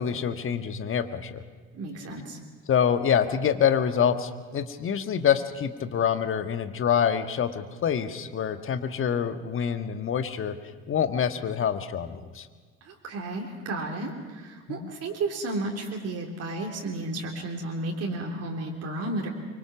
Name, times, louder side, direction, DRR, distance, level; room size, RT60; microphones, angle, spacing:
voice 1, 0.0-1.4 2.7-10.5 10.9-12.5 14.7-14.9, left 8 dB, 35° left, 9 dB, 1.5 m, -26 dB
voice 2, 1.7-2.4 12.8-19.3, right 2 dB, 40° right, 0 dB, 3.4 m, -33 dB
24.5 x 24.0 x 6.1 m, 1.5 s
figure-of-eight pair, 60°, 37 cm